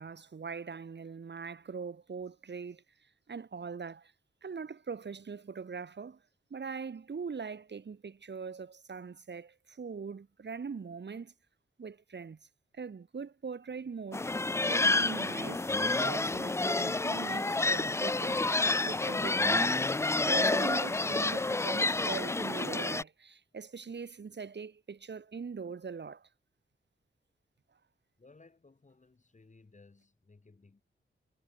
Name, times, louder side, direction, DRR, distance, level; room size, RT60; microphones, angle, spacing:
voice 1, 0.0-2.8 3.3-4.1 4.4-6.2 6.5-11.3 11.8-12.4 12.7-14.3 14.6-18.4 18.8-19.9 20.2-26.3, right 5 dB, 55° right, 2.2 m, -41 dB
sound 1, 14.1-23.0, left 2 dB, 15° left, 0.4 m, -29 dB
voice 2, 28.2-30.8, left 3 dB, 35° left, 4.4 m, -59 dB
wide cardioid pair, 85°, 21 cm